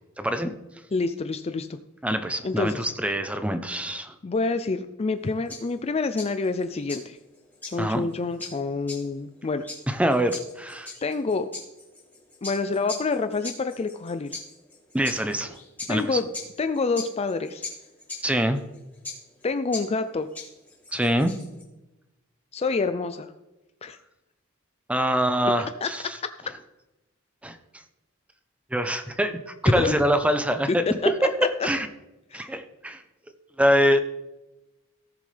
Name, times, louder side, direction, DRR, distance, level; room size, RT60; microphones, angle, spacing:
voice 1, 0.2-0.5 2.0-4.1 7.8-8.0 9.9-10.9 14.9-15.6 15.9-16.2 18.2-18.6 20.9-21.3 24.9-26.2 27.4-27.6 28.7-29.4 29.6-31.9 32.3-33.0 33.6-34.0, equal, 5° right, 8 dB, 0.7 m, -24 dB
voice 2, 0.9-1.8 2.4-2.9 4.2-7.2 7.7-9.6 11.0-11.5 12.4-14.3 15.9-16.3 16.6-17.6 19.4-20.3 22.5-23.3 23.8-24.0 25.8-25.9 29.7-30.0 31.0-31.3 32.3-32.5, left 4 dB, 30° left, 10 dB, 0.4 m, -27 dB
sound 1, 5.2-21.6, left 3 dB, 10° left, 3.1 m, -41 dB
17.5 x 6.9 x 3.4 m, 1.0 s
head